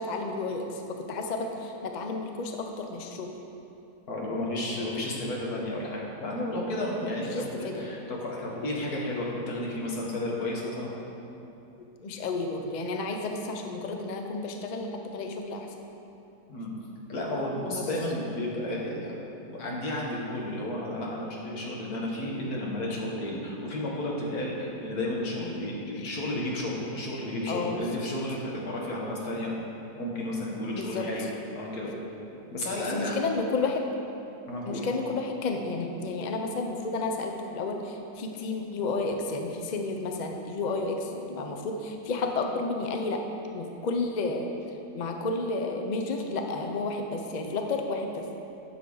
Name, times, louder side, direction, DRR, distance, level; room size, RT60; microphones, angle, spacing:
voice 1, 0.0-3.3 7.2-7.8 9.8-9.9 11.8-15.7 17.7-17.9 25.4-25.5 25.9-26.1 27.5-27.9 28.4-28.5 30.7-31.1 32.9-33.9 34.7-43.2 43.5-44.5 44.9-48.3, left 3 dB, 55° left, 3 dB, 0.5 m, -31 dB
voice 2, 4.1-10.9 16.5-16.7 17.1-19.2 19.5-29.5 30.0-31.9 32.5-33.2 34.5-34.9, left 1 dB, 75° left, -3 dB, 1.9 m, -32 dB
10.0 x 6.7 x 3.9 m, 2.8 s
omnidirectional pair, 1.6 m